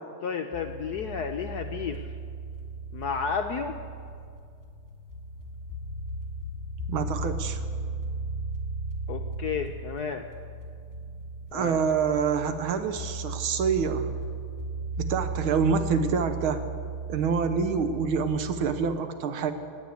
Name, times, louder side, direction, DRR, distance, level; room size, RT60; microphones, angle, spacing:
voice 1, 0.2-2.0 2.9-3.7 9.1-10.3 11.5-11.8, left 6 dB, 70° left, 4 dB, 0.9 m, -32 dB
sound 1, 0.5-19.0, right 3 dB, 10° right, 1.6 m, -36 dB
voice 2, 6.9-7.6 11.5-14.1 15.0-16.6 17.1-19.5, right 6 dB, 75° right, 9 dB, 1.8 m, -26 dB
19.0 x 8.1 x 8.3 m, 2.3 s
omnidirectional pair, 2.4 m